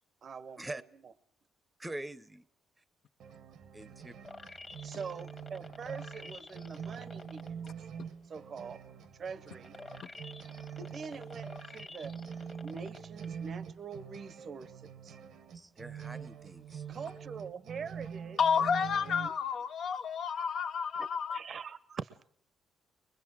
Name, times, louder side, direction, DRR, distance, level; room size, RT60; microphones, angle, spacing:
voice 1, 0.2-1.1 4.8-7.7 8.3-8.8 9.2-9.7 10.8-12.1 12.6-15.2 16.9-18.4 18.7-19.3 21.0-22.3, right 5 dB, 50° right, 0.8 m, -44 dB
voice 2, 1.8-2.5 3.7-4.1 15.5-16.9, right 1 dB, 15° right, 0.8 m, -43 dB
sound 1, 3.2-19.3, right 7 dB, 75° right, 1.0 m, -45 dB
sound 2, 4.2-7.7 8.2-13.3 13.7-13.8, left 3 dB, 30° left, 1.4 m, -50 dB
voice 3, 18.4-21.4, left 6 dB, 65° left, 0.9 m, -30 dB
22.5 x 21.5 x 6.2 m
cardioid pair, 90°, 0 cm